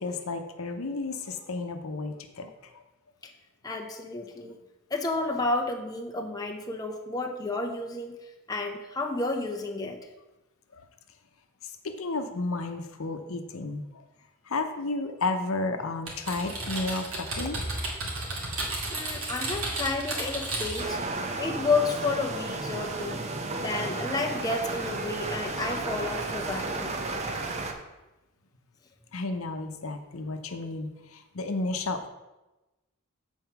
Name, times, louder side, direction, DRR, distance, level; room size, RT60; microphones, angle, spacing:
voice 1, 0.0-2.5 11.8-13.8 14.5-17.6 29.1-32.1, left 3 dB, 70° left, 6 dB, 0.8 m, -32 dB
voice 2, 3.6-4.6 4.9-10.0 18.3-18.5 18.9-21.0 21.4-23.2 23.6-26.9, left 3 dB, 15° left, 2 dB, 0.6 m, -31 dB
Typing, 16.1-21.0, right 2 dB, 70° right, 2.0 m, -33 dB
sound 1, 20.8-27.7, right 2 dB, 30° right, 0.7 m, -33 dB
7.7 x 4.5 x 5.8 m, 1.0 s
head